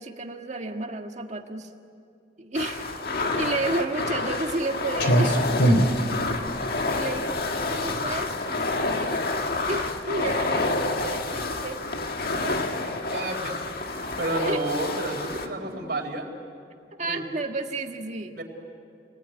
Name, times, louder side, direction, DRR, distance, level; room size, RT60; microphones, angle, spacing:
voice 1, 0.0-1.7 2.4-2.9 3.3-5.4 6.9-11.8 14.4-14.6 17.0-18.4, right 2 dB, 40° right, 4 dB, 1.7 m, -32 dB
sound 1, 2.5-15.5, left 3 dB, 60° left, 1.6 m, -29 dB
Clock, 4.9-12.4, right 1 dB, 90° left, 3.2 m, -27 dB
voice 2, 12.3-12.8 13.1-16.3 17.1-17.2 18.3-18.4, right 2 dB, 60° right, 1 dB, 4.2 m, -31 dB
28.5 x 20.5 x 9.7 m, 2.5 s
head